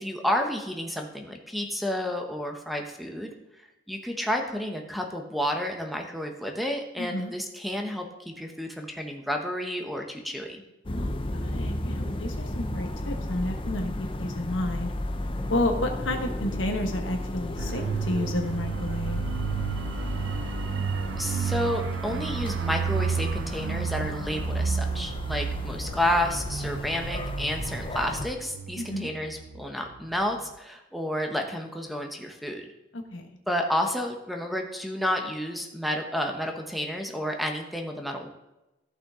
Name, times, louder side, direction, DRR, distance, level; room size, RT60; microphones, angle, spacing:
voice 1, 0.0-3.3 3.9-10.6 21.2-32.7 33.5-38.4, left 1 dB, ahead, 3 dB, 0.9 m, -30 dB
voice 2, 7.0-7.3 10.9-13.9 14.2-14.9 15.5-19.2 28.8-29.1 32.9-33.3, left 1 dB, 90° left, 4 dB, 1.4 m, -31 dB
sound 1, 10.8-28.3, left 1 dB, 30° left, 0.6 m, -34 dB
sound 2, 17.6-29.9 30.2-30.4, right 6 dB, 70° right, 0.4 m, -32 dB
14.5 x 5.8 x 3.7 m, 0.98 s
head